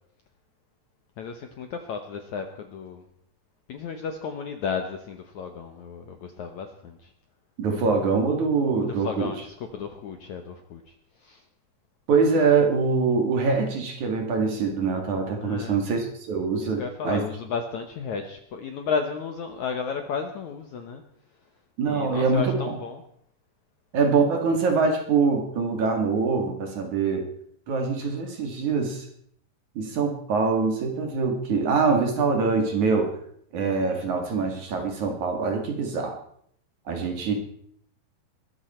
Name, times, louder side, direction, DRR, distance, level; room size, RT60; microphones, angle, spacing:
voice 1, 1.2-3.0 3.7-7.1 8.8-11.4 15.4-15.8 16.6-21.0 21.8-23.0, left 6 dB, 65° left, 6 dB, 1.9 m, -33 dB
voice 2, 7.6-9.3 12.1-17.2 21.8-22.8 23.9-27.3 27.7-29.1 29.8-33.1 33.5-36.2 36.9-37.3, right 4 dB, 50° right, 3 dB, 3.3 m, -24 dB
22.0 x 14.0 x 4.4 m, 0.67 s
omnidirectional pair, 4.7 m